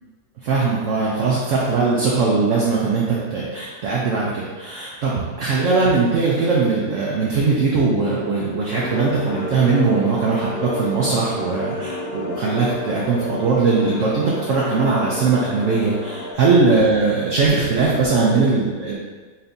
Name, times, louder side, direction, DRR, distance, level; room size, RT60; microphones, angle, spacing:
voice 1, 0.4-19.0, right 4 dB, 65° right, -5 dB, 0.8 m, -20 dB
sound 1, 8.7-16.3, left 2 dB, 85° left, 0.5 m, -31 dB
4.2 x 3.3 x 2.6 m, 1.4 s
omnidirectional pair, 1.7 m